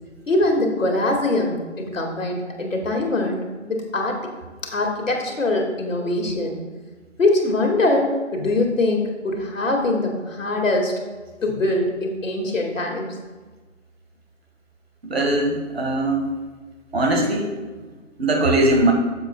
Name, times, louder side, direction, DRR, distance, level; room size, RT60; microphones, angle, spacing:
voice 1, 0.3-4.2 4.7-6.6 7.2-10.9 11.4-13.1, left 2 dB, 85° left, 1 dB, 2.0 m, -22 dB
voice 2, 15.0-16.4 16.9-17.5 18.2-18.9, right 1 dB, 55° right, 2 dB, 1.5 m, -20 dB
10.0 x 7.2 x 2.2 m, 1.3 s
figure-of-eight pair, 170°, 37 cm